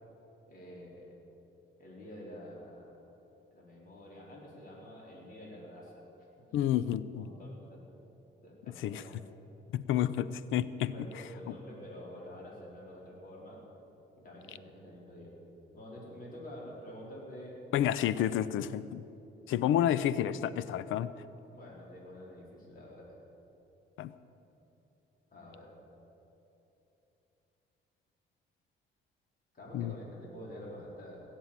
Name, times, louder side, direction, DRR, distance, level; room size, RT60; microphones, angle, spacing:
voice 1, 0.5-1.1 1.8-3.1 3.5-6.5 7.1-7.8 8.4-9.1 10.9-13.6 14.2-15.3 15.7-17.6 21.5-23.1 25.3-25.7 29.5-31.2, equal, 45° left, -4 dB, 4.6 m, -48 dB
voice 2, 6.5-7.3 8.8-9.0 9.7-10.9 11.5-11.6 17.7-19.0 19.5-21.1 24.0-24.1 29.7-29.9, left 11 dB, 85° left, 16 dB, 0.5 m, -30 dB
18.0 x 7.6 x 8.8 m, 2.9 s
cardioid pair, 90°, 20 cm